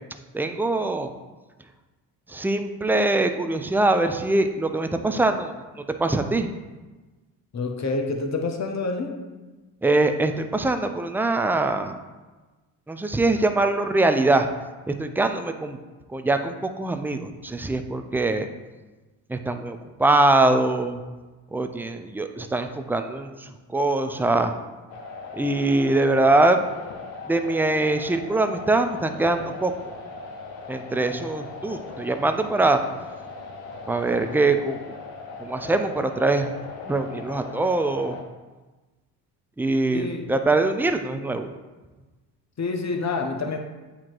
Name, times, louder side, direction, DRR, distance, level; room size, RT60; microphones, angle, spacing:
voice 1, 0.3-1.1 2.3-5.5 6.0-6.5 9.8-12.0 12.9-14.5 14.9-15.8 16.1-18.5 19.3-21.0 21.5-24.5 25.3-26.6 27.3-29.7 30.7-32.8 33.9-34.8 35.4-36.5 36.9-38.2 39.6-41.5, right 2 dB, 5° right, 7 dB, 0.4 m, -23 dB
voice 2, 7.5-9.2 39.9-40.3 42.6-43.6, left 3 dB, 35° left, 3 dB, 1.0 m, -27 dB
sound 1, 24.9-38.2, left 4 dB, 85° left, 1.0 m, -39 dB
8.6 x 2.9 x 4.5 m, 1.2 s
hypercardioid pair, 60°, 48 cm